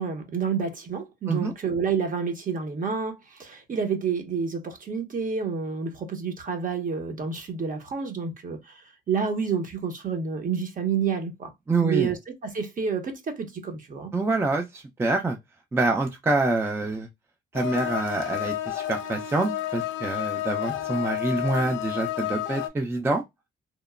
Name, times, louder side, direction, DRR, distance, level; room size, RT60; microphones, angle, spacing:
voice 1, 0.0-11.5 11.8-14.1 20.7-20.8, right 6 dB, 40° right, 0.9 m, -29 dB
voice 2, 11.7-12.1 14.1-15.4 15.7-17.1 17.5-23.2, right 2 dB, 10° right, 0.4 m, -26 dB
sound 1, 17.5-22.7, left 14 dB, 80° left, 0.4 m, -31 dB
2.9 x 2.0 x 2.3 m
cardioid pair, 90°, 20 cm